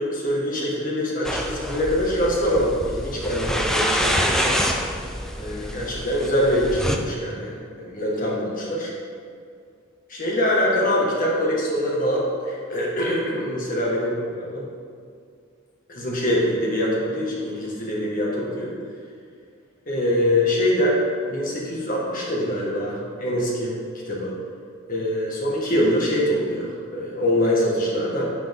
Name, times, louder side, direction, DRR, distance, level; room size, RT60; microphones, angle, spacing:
voice 1, 0.0-4.6 5.4-8.9 10.1-14.6 15.9-18.7 19.9-21.0 21.3-23.7 24.1-24.3 24.9-28.2, equal, 40° left, -4 dB, 1.8 m, -24 dB
sound 1, 1.2-7.0, equal, ahead, 0.5 m, -26 dB
9.6 x 8.4 x 3.7 m, 2.2 s
head